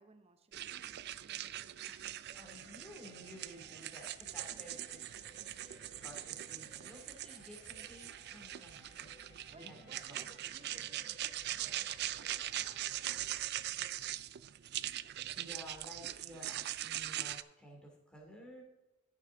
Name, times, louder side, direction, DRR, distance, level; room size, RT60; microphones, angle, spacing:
voice 1, 0.0-1.9 4.5-4.7 9.5-14.2, right 2 dB, 30° right, 9 dB, 0.7 m, -62 dB
sound 1, 0.5-17.4, right 13 dB, 50° right, 0.3 m, -42 dB
voice 2, 1.8-5.2 5.5-9.1 9.5-9.8 10.1-10.2 15.3-18.6, equal, 5° left, -1 dB, 2.6 m, -54 dB
sound 2, 2.3-13.2, left 2 dB, 35° left, 1.9 m, -62 dB
14.5 x 6.6 x 3.8 m, 0.98 s
head